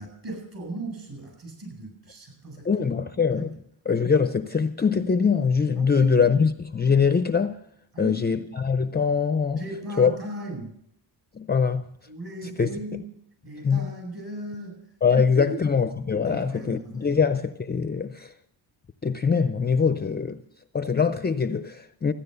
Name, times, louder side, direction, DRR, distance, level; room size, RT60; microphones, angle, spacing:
voice 1, 0.0-2.9 3.3-3.5 5.8-6.4 7.9-8.4 9.6-10.8 12.1-13.1 13.4-14.8 15.1-15.6 16.2-17.2, right 1 dB, 50° right, 7.8 m, -37 dB
voice 2, 2.6-3.6 3.9-7.6 8.0-9.6 10.0-10.1 11.3-11.9 12.6-12.7 13.6-13.9 15.0-18.3 19.0-20.4 20.7-22.1, left 6 dB, 20° left, 0.5 m, -23 dB
14.5 x 10.0 x 6.8 m
cardioid pair, 105°, 45 cm